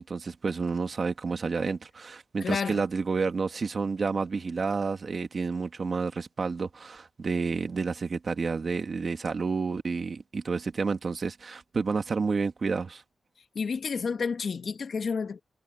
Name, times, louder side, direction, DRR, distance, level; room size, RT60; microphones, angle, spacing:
voice 1, 0.0-13.0, right 4 dB, 45° right, 2.0 m, -30 dB
voice 2, 2.4-2.8 13.6-15.4, left 5 dB, 55° left, 1.8 m, -30 dB
wide cardioid pair, 145°, 0 cm